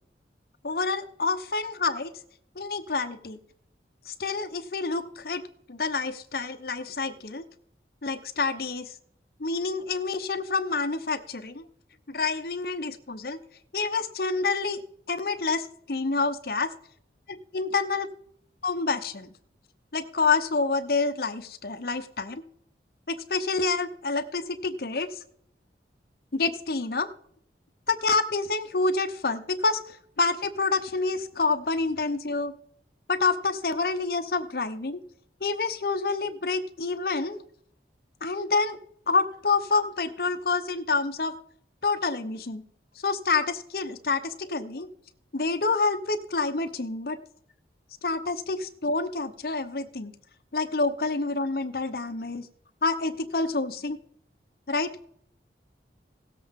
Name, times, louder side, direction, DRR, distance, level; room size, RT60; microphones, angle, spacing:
voice 1, 0.6-2.1 2.6-3.4 4.1-5.4 5.7-7.4 8.0-8.8 9.4-11.6 12.1-13.4 13.7-14.8 15.1-16.7 17.3-18.1 18.6-19.3 19.9-22.4 23.1-25.2 26.3-27.1 27.9-32.5 33.1-35.0 35.4-37.4 38.2-38.8 39.1-41.3 41.8-42.6 43.0-44.9 45.3-47.2 48.0-50.1 50.5-52.5 52.8-54.0 54.7-54.9, left 3 dB, 55° left, 10 dB, 0.8 m, -28 dB
17.5 x 7.7 x 3.7 m, 0.66 s
head